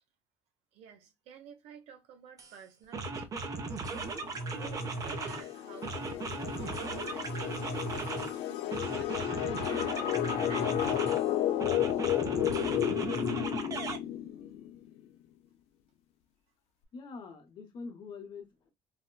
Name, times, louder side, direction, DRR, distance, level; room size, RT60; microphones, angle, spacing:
voice 1, 0.7-9.7 10.2-11.0, right 7 dB, 80° right, 0.8 m, -53 dB
sound 1, 2.4-2.5 2.9-5.5 5.8-8.4 8.7-11.2 11.6-14.0, right 3 dB, 35° right, 0.6 m, -37 dB
sound 2, 4.2-14.7, left 12 dB, 90° left, 0.4 m, -33 dB
voice 2, 16.9-18.7, left 4 dB, 50° left, 0.9 m, -45 dB
4.1 x 2.1 x 2.2 m
cardioid pair, 140°, 10 cm